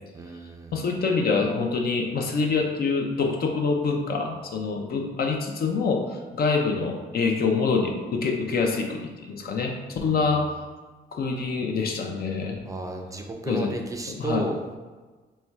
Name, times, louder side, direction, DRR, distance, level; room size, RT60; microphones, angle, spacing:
voice 1, 0.1-0.8 10.1-10.4 12.6-14.8, right 2 dB, 15° right, 3 dB, 0.5 m, -33 dB
voice 2, 0.7-10.4 11.1-12.6 13.5-13.7 14.2-14.4, left 4 dB, 50° left, 2 dB, 0.6 m, -25 dB
4.3 x 3.1 x 2.3 m, 1.3 s
cardioid pair, 90°, 20 cm